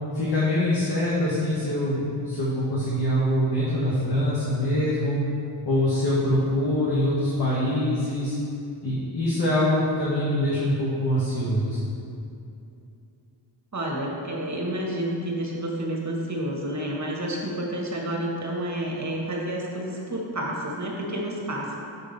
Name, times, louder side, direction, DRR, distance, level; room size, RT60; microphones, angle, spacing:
voice 1, 0.1-5.2 5.6-8.4 8.8-11.9, left 1 dB, 55° left, -7 dB, 1.5 m, -24 dB
voice 2, 13.7-21.8, right 1 dB, 35° right, -2 dB, 1.5 m, -30 dB
6.3 x 3.6 x 5.3 m, 2.6 s
cardioid pair, 50°, 48 cm